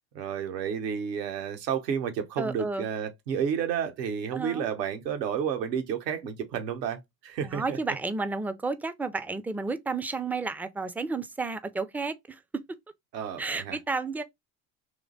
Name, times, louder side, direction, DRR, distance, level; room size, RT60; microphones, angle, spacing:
voice 1, 0.0-7.8 13.1-13.8, right 8 dB, 85° right, 1.2 m, -31 dB
voice 2, 2.4-2.9 4.3-4.7 7.4-12.4 13.4-14.2, right 3 dB, 5° right, 0.4 m, -32 dB
3.6 x 3.0 x 3.8 m
hypercardioid pair, 65°, 48 cm